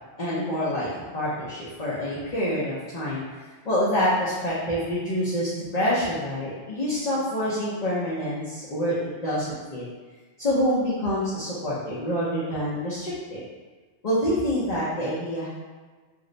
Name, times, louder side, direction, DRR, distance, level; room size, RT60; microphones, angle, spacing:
voice 1, 0.2-0.9 1.1-3.2 3.6-9.8 10.4-13.4 14.0-15.5, equal, 45° left, -9 dB, 0.6 m, -26 dB
2.5 x 2.1 x 3.8 m, 1.4 s
omnidirectional pair, 1.2 m